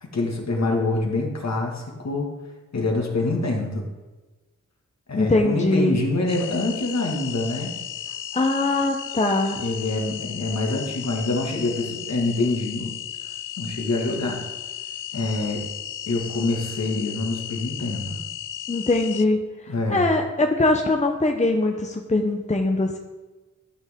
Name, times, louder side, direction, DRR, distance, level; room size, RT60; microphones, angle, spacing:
voice 1, 0.0-2.3 2.7-3.8 5.1-7.8 9.6-12.9 13.6-14.4 15.1-15.6 16.1-18.2 19.7-20.1, left 2 dB, 60° left, 0 dB, 2.0 m, -25 dB
voice 2, 5.1-6.0 8.3-9.6 18.7-23.0, left 2 dB, 25° left, 3 dB, 0.8 m, -22 dB
sound 1, 6.3-19.2, left 11 dB, 85° left, 0.5 m, -35 dB
13.0 x 6.3 x 3.7 m, 1.2 s
cardioid pair, 60°, 31 cm